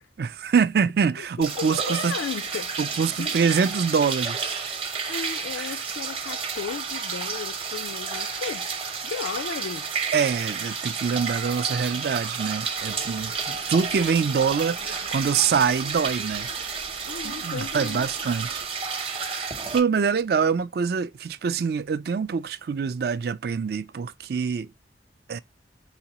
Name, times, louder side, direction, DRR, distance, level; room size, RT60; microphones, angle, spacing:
voice 1, 0.2-2.1 2.8-4.6 5.1-5.3 5.6-5.8 10.1-16.5 17.2-19.5 19.7-24.7 25.3-25.4, right 6 dB, 55° right, 0.4 m, -25 dB
sound 1, 1.4-19.8, right 5 dB, 30° right, 0.8 m, -31 dB
voice 2, 1.6-2.7 3.2-3.4 5.1-8.7 9.0-9.9 17.1-18.1, left 7 dB, 90° left, 0.3 m, -35 dB
sound 2, 12.8-18.7, right 2 dB, 80° right, 0.7 m, -47 dB
5.0 x 3.6 x 2.8 m
head